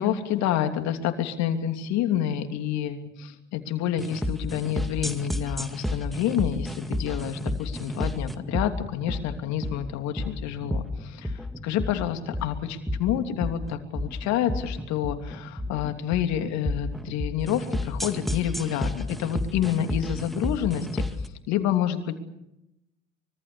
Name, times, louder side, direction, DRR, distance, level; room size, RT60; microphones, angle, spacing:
voice 1, 0.0-21.0 21.5-22.1, left 10 dB, 50° left, 7 dB, 3.1 m, -28 dB
sound 1, 4.0-21.3, left 1 dB, ahead, 2.0 m, -32 dB
25.5 x 23.5 x 7.0 m, 0.86 s
figure-of-eight pair, 65°, 34 cm